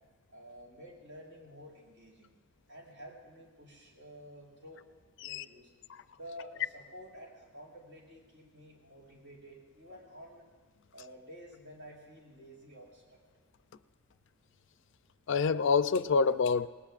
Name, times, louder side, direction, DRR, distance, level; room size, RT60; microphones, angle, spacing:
voice 1, 0.3-2.3 2.7-4.9 5.2-5.7 6.1-10.4 10.9-13.2, equal, 65° right, -3 dB, 5.8 m, -51 dB
voice 2, 15.3-16.7, left 5 dB, 60° left, 14 dB, 0.4 m, -27 dB
27.5 x 19.5 x 2.5 m, 1.4 s
head